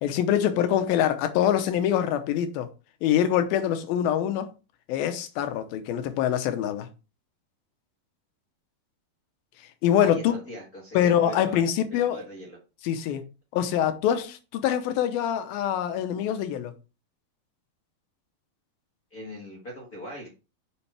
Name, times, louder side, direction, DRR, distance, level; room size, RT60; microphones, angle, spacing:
voice 1, 0.0-2.7 3.0-4.5 4.9-6.9 9.8-10.4 10.9-12.2 12.8-13.2 13.5-16.7, left 10 dB, 90° left, 2.7 m, -24 dB
voice 2, 10.0-11.6 11.9-12.6 19.1-20.3, equal, 35° left, 1.7 m, -41 dB
7.1 x 6.3 x 3.4 m
omnidirectional pair, 4.1 m